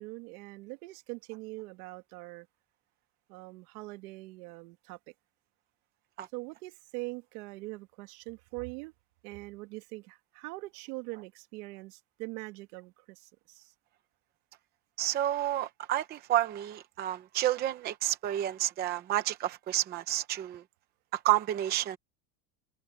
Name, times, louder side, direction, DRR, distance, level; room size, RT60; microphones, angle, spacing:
voice 1, 0.0-2.5 3.3-5.0 6.3-8.9 9.2-13.7, right 23 dB, 70° right, 2.3 m, -43 dB
voice 2, 15.0-20.6 21.1-22.0, right 13 dB, 20° right, 0.7 m, -30 dB
cardioid pair, 180°, 47 cm